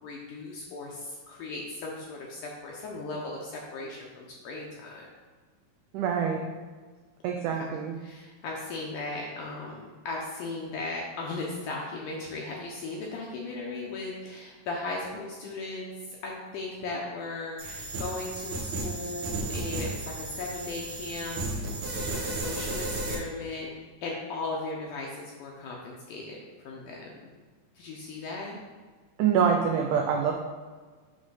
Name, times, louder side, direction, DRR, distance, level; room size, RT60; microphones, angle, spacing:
voice 1, 0.0-5.1 7.5-7.7 8.0-23.7 24.0-26.4 26.6-27.3 27.8-28.6, left 3 dB, 75° left, -2 dB, 2.0 m, -37 dB
voice 2, 5.9-6.4 7.2-8.0 29.2-30.3, right 7 dB, 90° right, 1 dB, 1.8 m, -25 dB
sound 1, 17.6-23.2, right 2 dB, 70° right, 1.2 m, -34 dB
7.5 x 3.3 x 5.5 m, 1.5 s
omnidirectional pair, 4.3 m